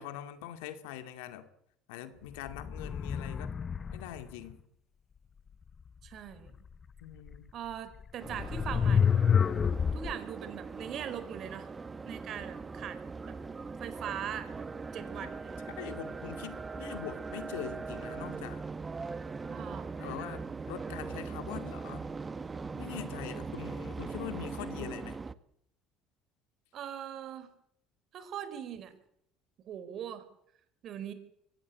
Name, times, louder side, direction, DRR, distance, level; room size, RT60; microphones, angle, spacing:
voice 1, 0.0-1.5 1.9-3.5 3.9-4.6 7.0-7.5 15.2-15.3 15.7-18.6 20.0-22.1 22.7-25.2, left 11 dB, 80° left, 2.3 m, -43 dB
sound 1, 2.5-4.2 7.3-7.4 8.3-10.1, left 7 dB, 35° left, 0.8 m, -28 dB
voice 2, 6.0-6.5 7.5-9.1 9.9-11.7 12.0-13.0 13.3-13.4 13.8-14.7 14.9-15.6 19.5-19.9 26.7-27.5 28.1-28.9 29.7-30.2 30.8-31.1, right 9 dB, 55° right, 4.4 m, -41 dB
sound 2, 8.2-25.3, right 4 dB, 25° right, 1.3 m, -41 dB
23.5 x 17.0 x 8.5 m
hypercardioid pair, 75°, 0 cm